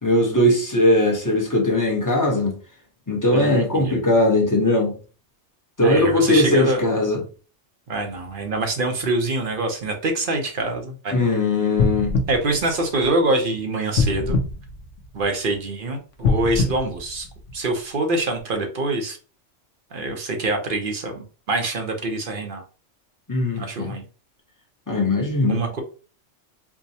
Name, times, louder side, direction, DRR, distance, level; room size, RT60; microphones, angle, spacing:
voice 1, 0.0-2.5 3.1-5.0 5.8-7.2 11.1-12.1 23.3-24.0 24.9-25.6, left 1 dB, 15° left, 0.8 m, -19 dB
voice 2, 3.3-4.0 5.8-6.8 7.9-11.2 12.3-14.4 15.1-17.3 17.5-19.2 19.9-22.6 23.6-24.0 25.5-25.8, right 2 dB, 50° right, 0.8 m, -25 dB
sound 1, 11.7-13.4 13.9-15.5 16.1-17.8 18.4-18.5, left 4 dB, 75° left, 1.0 m, -24 dB
4.6 x 2.1 x 2.7 m
omnidirectional pair, 1.3 m